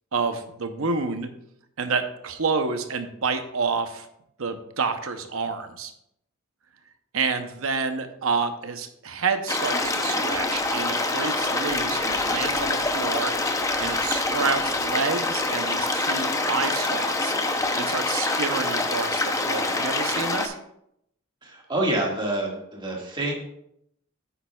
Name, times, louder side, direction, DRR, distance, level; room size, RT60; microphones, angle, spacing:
voice 1, 0.1-1.3 1.8-4.1 4.4-5.9 7.1-13.3 13.8-17.3 17.8-20.5, right 4 dB, 70° right, 8 dB, 0.8 m, -28 dB
sound 1, 9.5-20.5, left 2 dB, 15° left, 0.7 m, -25 dB
voice 2, 21.4-23.3, right 1 dB, 20° right, -2 dB, 1.8 m, -27 dB
9.3 x 8.7 x 2.4 m, 0.76 s
head